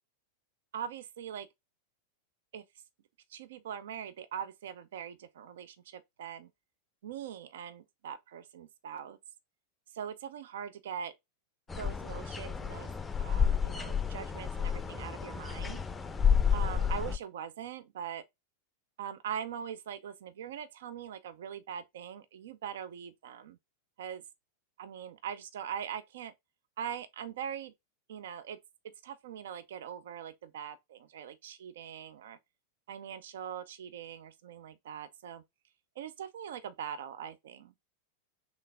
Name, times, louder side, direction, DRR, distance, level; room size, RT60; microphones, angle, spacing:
voice 1, 0.7-1.5 2.5-2.6 3.3-6.5 7.0-9.2 9.9-11.1 11.8-12.9 13.2-15.8 16.5-18.2 19.0-23.6 24.0-24.2 24.8-26.3 26.8-27.7 28.1-28.6 29.0-32.4 32.9-35.4 36.0-37.7, right 8 dB, 60° right, 0.4 m, -42 dB
sound 1, 11.7-17.2, left 7 dB, 15° left, 0.5 m, -30 dB
3.7 x 3.5 x 3.4 m
figure-of-eight pair, 90°, 0 cm